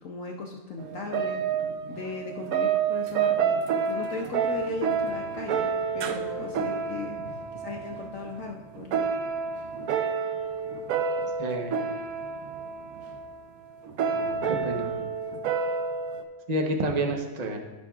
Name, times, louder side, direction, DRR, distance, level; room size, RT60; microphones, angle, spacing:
voice 1, 0.0-1.4 1.9-3.6 3.9-7.2 7.6-9.0, left 4 dB, 65° left, 1 dB, 0.8 m, -37 dB
sound 1, 0.8-16.2, right 6 dB, 70° right, 0.8 m, -29 dB
voice 2, 11.4-11.8 14.1-14.9 16.5-17.6, right 1 dB, 45° right, 2 dB, 0.5 m, -29 dB
13.5 x 6.2 x 2.4 m, 1.2 s
omnidirectional pair, 2.0 m